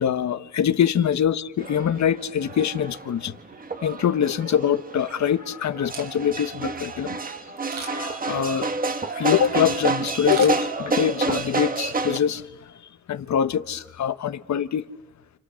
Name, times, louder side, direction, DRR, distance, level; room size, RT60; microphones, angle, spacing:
voice 1, 0.0-3.4 3.8-7.2 7.7-8.7 9.1-12.5 13.1-14.8, left 8 dB, 60° left, 1.2 m, -24 dB
sound 1, 1.6-12.2, right 3 dB, 25° right, 1.3 m, -29 dB
Camera, 5.7-6.5 7.6-8.2 10.2-11.2 11.6-11.7, right 5 dB, 70° right, 4.8 m, -39 dB
29.5 x 29.5 x 6.4 m
cardioid pair, 120°, 32 cm